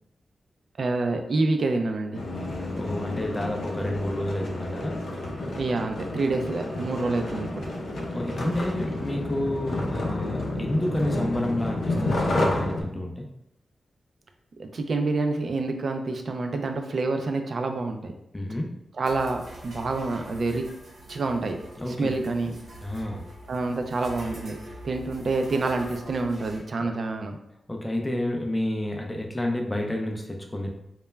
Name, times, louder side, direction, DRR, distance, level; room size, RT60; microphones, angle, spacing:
voice 1, 0.8-2.2 5.6-7.7 14.6-18.1 19.0-20.7 21.1-21.6 21.9-22.6 23.5-24.6 24.8-27.4, right 3 dB, 60° right, 5 dB, 0.3 m, -27 dB
sound 1, 2.1-12.8, left 1 dB, 80° left, 0.5 m, -30 dB
voice 2, 2.7-5.0 8.0-13.3 18.3-18.8 21.8-22.1 22.8-23.2 26.8-26.9 27.7-30.7, left 1 dB, 15° left, 1 dB, 0.4 m, -30 dB
sound 2, 19.0-26.6, right 1 dB, 90° right, 0.8 m, -44 dB
2.2 x 2.0 x 3.2 m, 0.80 s
wide cardioid pair, 90°, 0 cm